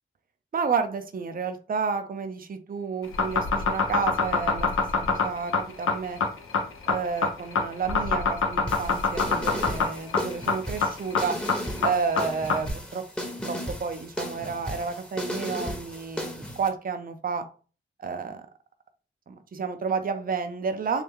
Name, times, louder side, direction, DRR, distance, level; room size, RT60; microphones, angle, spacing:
voice 1, 0.5-4.7 5.1-6.2 6.9-11.4 11.8-13.0 13.4-17.5 18.0-18.4 19.3-21.0, right 5 dB, 45° right, 8 dB, 0.5 m, -30 dB
sound 1, 3.0-12.7, left 5 dB, 80° left, 0.6 m, -24 dB
sound 2, 8.7-16.7, equal, 5° left, 0.8 m, -35 dB
3.2 x 2.2 x 3.5 m, 0.38 s
cardioid pair, 40°, 21 cm